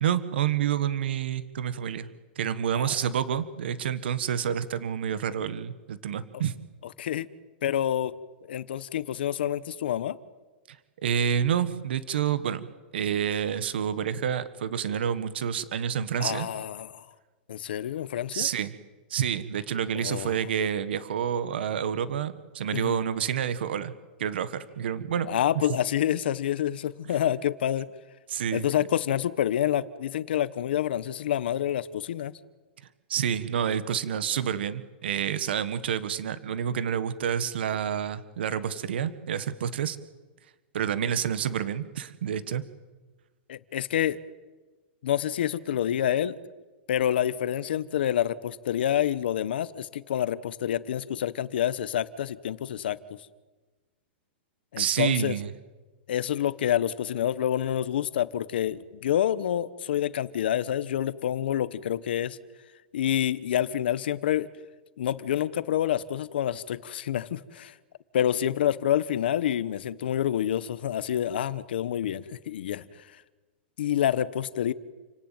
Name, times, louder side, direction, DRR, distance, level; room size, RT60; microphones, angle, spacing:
voice 1, 0.0-2.1 2.4-6.5 10.7-10.8 11.0-12.7 12.9-16.5 18.3-18.7 19.1-23.9 24.2-25.3 27.0-27.2 28.3-28.7 33.1-40.0 40.7-42.6 54.8-55.5, right 8 dB, 70° right, 14 dB, 1.6 m, -28 dB
voice 2, 7.0-7.3 7.6-8.1 8.5-10.2 16.2-17.0 17.5-18.5 19.9-20.4 22.7-23.0 25.3-27.9 28.5-32.3 43.5-44.2 45.0-46.4 46.9-53.0 54.7-55.4 56.1-62.4 62.9-64.5 65.0-67.7 68.1-72.8 73.8-74.7, left 11 dB, 65° left, 16 dB, 1.2 m, -27 dB
29.0 x 18.0 x 9.2 m, 1.3 s
supercardioid pair, 180°, 6 cm